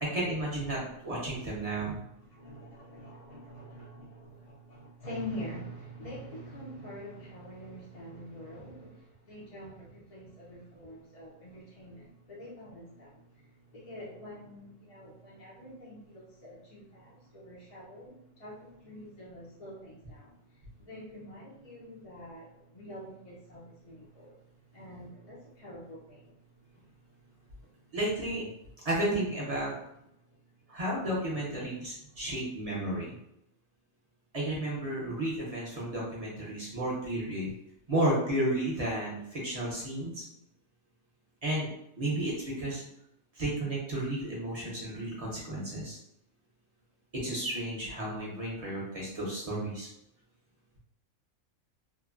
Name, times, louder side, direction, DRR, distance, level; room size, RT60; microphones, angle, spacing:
voice 1, 0.0-2.0 27.9-28.5 28.8-29.7 30.7-33.2 34.3-37.5 37.9-40.2 41.4-41.7 42.0-42.8 43.3-46.0 47.1-49.9, right 1 dB, 35° right, -5 dB, 0.6 m, -32 dB
voice 2, 2.3-20.3 20.8-24.4 24.7-26.3 26.7-26.9, equal, 50° left, -6 dB, 0.4 m, -46 dB
3.0 x 2.1 x 2.4 m, 0.79 s
omnidirectional pair, 1.4 m